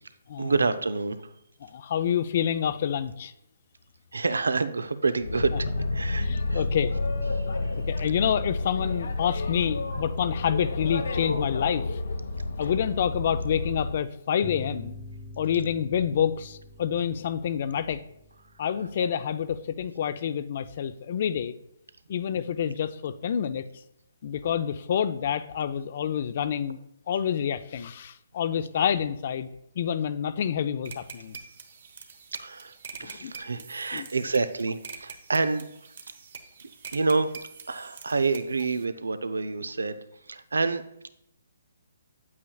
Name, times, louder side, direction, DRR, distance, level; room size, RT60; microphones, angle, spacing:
voice 1, 0.4-1.3 4.1-6.6 7.4-7.5 32.3-32.7 33.0-35.6 36.9-40.0 40.3-40.8, right 3 dB, 85° right, 11 dB, 0.5 m, -28 dB
voice 2, 1.6-3.3 6.2-6.9 7.9-12.0 12.6-14.9 15.4-18.0 18.6-21.5 22.1-23.6 24.2-26.8 27.1-29.5 29.8-31.4 33.0-33.6 33.9-34.1, left 8 dB, 50° left, 12 dB, 0.5 m, -28 dB
Boat Water vehicle, 5.2-14.0, left 2 dB, 75° left, 1.0 m, -30 dB
sound 1, 14.4-19.6, left 2 dB, 10° left, 0.7 m, -44 dB
sound 2, 30.8-38.8, right 5 dB, 60° right, 1.0 m, -45 dB
8.6 x 8.4 x 2.3 m, 0.78 s
hypercardioid pair, 145°, 0 cm